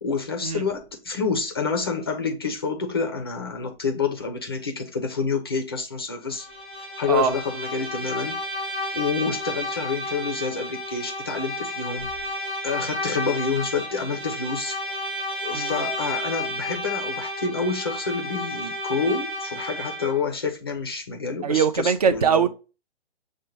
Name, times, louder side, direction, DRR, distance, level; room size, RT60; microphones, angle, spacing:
voice 1, 0.0-6.5 7.0-8.4 8.9-12.1 12.6-14.8 15.4-22.5, left 5 dB, 25° left, 0.4 m, -28 dB
Bowed string instrument, 6.4-20.3, left 1 dB, ahead, 0.8 m, -32 dB
voice 2, 15.5-15.9 21.4-22.5, right 6 dB, 40° right, 0.4 m, -22 dB
6.3 x 2.1 x 2.8 m
figure-of-eight pair, 140°, 33 cm